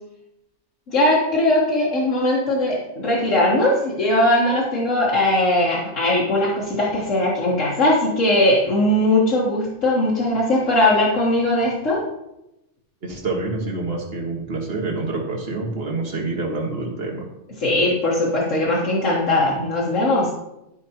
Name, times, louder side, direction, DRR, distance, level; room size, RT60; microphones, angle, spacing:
voice 1, 0.9-12.0 17.6-20.3, left 1 dB, 80° left, -7 dB, 1.9 m, -19 dB
voice 2, 13.0-17.2, right 3 dB, 50° right, -1 dB, 1.9 m, -27 dB
12.5 x 5.1 x 2.9 m, 0.88 s
omnidirectional pair, 1.3 m